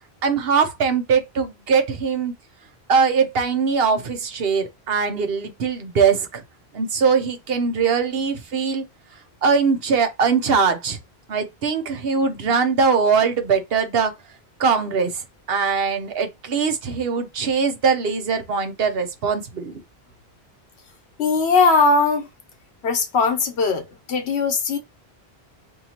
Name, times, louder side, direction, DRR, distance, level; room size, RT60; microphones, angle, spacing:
voice 1, 0.2-2.3 2.9-6.4 6.7-8.8 9.4-11.0 11.3-14.1 14.6-15.1 15.5-19.7, right 5 dB, 65° right, 1.0 m, -21 dB
voice 2, 21.2-22.3 22.8-24.8, left 4 dB, 85° left, 1.2 m, -19 dB
4.4 x 2.8 x 2.9 m
omnidirectional pair, 1.1 m